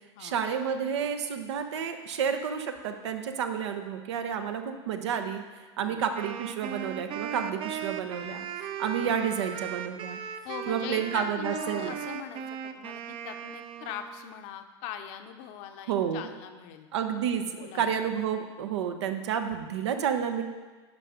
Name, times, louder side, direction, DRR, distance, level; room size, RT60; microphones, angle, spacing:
voice 1, 0.2-5.4 5.8-10.2 10.7-11.9 15.9-16.2 16.9-20.4, right 8 dB, 75° right, 6 dB, 1.0 m, -30 dB
Wind instrument woodwind instrument, 6.1-14.3, right 8 dB, 40° right, 0.7 m, -38 dB
voice 2, 10.4-16.9 17.5-17.9, left 9 dB, 55° left, 7 dB, 0.9 m, -41 dB
10.5 x 5.5 x 5.0 m, 1.3 s
hypercardioid pair, 100°, 15 cm